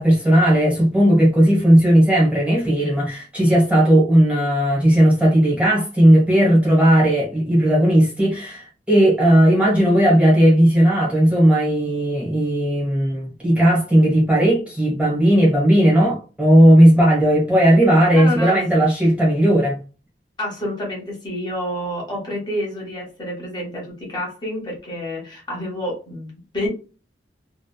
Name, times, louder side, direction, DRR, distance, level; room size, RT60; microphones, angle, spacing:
voice 1, 0.0-19.8, equal, 5° right, 1.0 m, -16 dB
voice 2, 18.1-18.8 20.4-26.7, equal, 25° left, 1.0 m, -28 dB
2.8 x 2.2 x 2.2 m
head